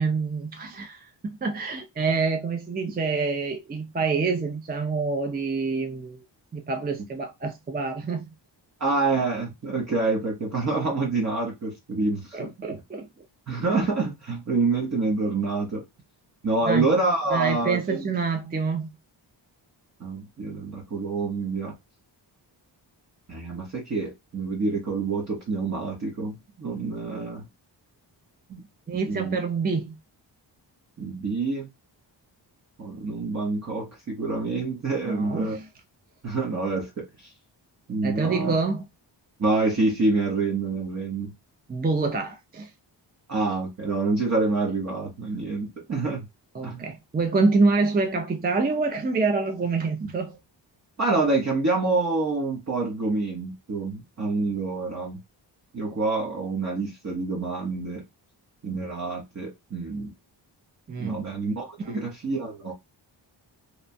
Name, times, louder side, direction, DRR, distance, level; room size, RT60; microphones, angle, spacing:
voice 1, 0.0-6.2 6.5-8.3 12.3-13.1 16.7-16.9 17.3-18.9 28.9-30.0 35.0-35.7 38.0-38.8 41.7-42.7 46.5-50.4 60.9-61.2 61.8-62.1, right 4 dB, 20° right, 0.4 m, -26 dB
voice 2, 8.8-12.5 13.5-15.8 16.4-18.1 20.0-21.8 23.3-27.5 28.5-28.6 29.1-29.4 31.0-31.7 32.8-35.6 36.2-37.3 37.9-38.5 39.4-41.3 43.3-46.3 46.6-46.8 51.0-55.2 55.7-58.0 58.6-60.1 61.0-62.7, right 3 dB, 40° right, 0.8 m, -27 dB
2.9 x 2.2 x 2.6 m
wide cardioid pair, 100°, 44 cm